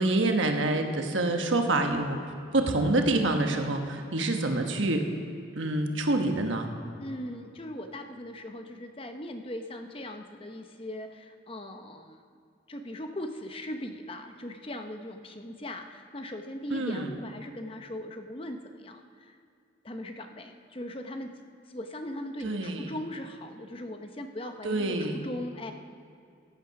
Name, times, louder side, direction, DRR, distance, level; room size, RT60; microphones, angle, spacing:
voice 1, 0.0-2.2 2.5-5.0 5.6-6.7 16.7-17.1 22.4-22.9 24.6-25.2, right 2 dB, 90° right, 4 dB, 1.3 m, -26 dB
voice 2, 7.0-12.2 12.7-19.4 19.8-21.3 21.7-25.7, left 1 dB, 30° left, 6 dB, 0.8 m, -39 dB
15.0 x 9.1 x 5.9 m, 2.5 s
head